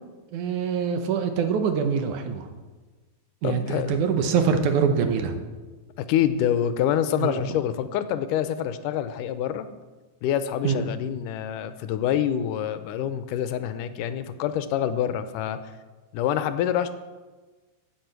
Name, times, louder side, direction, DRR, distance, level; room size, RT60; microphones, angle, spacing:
voice 1, 0.3-2.4 3.4-5.4 7.2-7.4 10.6-10.8, right 6 dB, 70° right, 7 dB, 2.4 m, -24 dB
voice 2, 3.4-4.0 6.0-9.7 10.2-15.6 16.1-17.0, left 10 dB, 80° left, 11 dB, 2.2 m, -26 dB
10.5 x 8.9 x 7.9 m, 1.3 s
omnidirectional pair, 3.8 m